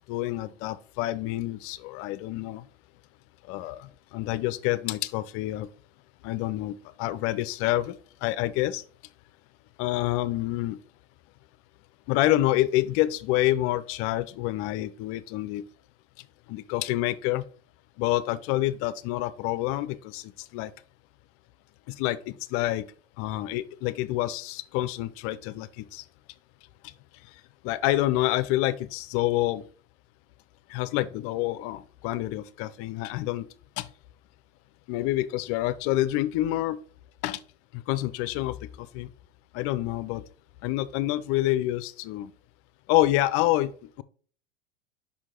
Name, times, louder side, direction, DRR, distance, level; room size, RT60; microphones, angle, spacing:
voice 1, 0.0-2.7 3.5-5.7 6.2-8.0 8.2-8.8 9.8-10.8 12.1-15.6 16.5-17.5 18.0-20.7 21.9-22.8 23.2-26.0 27.6-29.6 30.7-33.5 33.8-33.9 34.9-36.8 37.2-37.4 37.7-39.1 39.5-40.2 40.6-42.3 42.9-44.0, left 15 dB, 45° left, 16 dB, 0.5 m, -27 dB
5.7 x 4.5 x 3.7 m, 0.43 s
hypercardioid pair, 105°, 31 cm